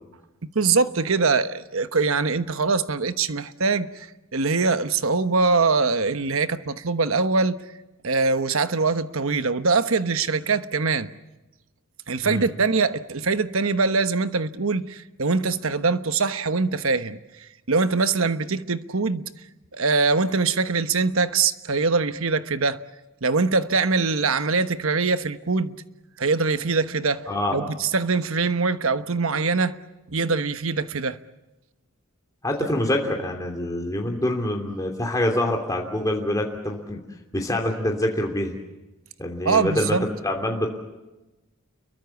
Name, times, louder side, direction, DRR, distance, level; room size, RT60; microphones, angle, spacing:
voice 1, 0.5-7.6 8.0-11.1 12.1-19.3 19.7-22.8 23.2-25.7 26.2-29.8 30.1-31.2 39.4-40.1, right 4 dB, 70° right, 1.2 m, -23 dB
voice 2, 27.3-27.6 32.4-37.0 37.3-38.6 39.2-40.0 40.2-40.7, left 1 dB, 15° left, 3.0 m, -25 dB
29.5 x 23.0 x 7.2 m
head